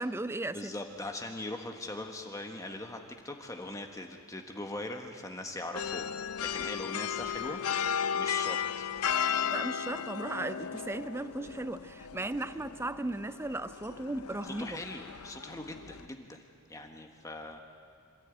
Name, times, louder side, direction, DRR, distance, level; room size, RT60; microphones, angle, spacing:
voice 1, 0.0-0.7 9.5-14.8, right 2 dB, 10° right, 13 dB, 0.5 m, -36 dB
voice 2, 0.5-3.0 3.2-7.6 8.1-8.9 12.5-12.6 14.4-17.6, left 2 dB, 15° left, 4 dB, 1.3 m, -41 dB
sound 1, 5.7-16.1, left 8 dB, 85° left, 0.7 m, -35 dB
26.0 x 14.5 x 9.1 m, 2.5 s
head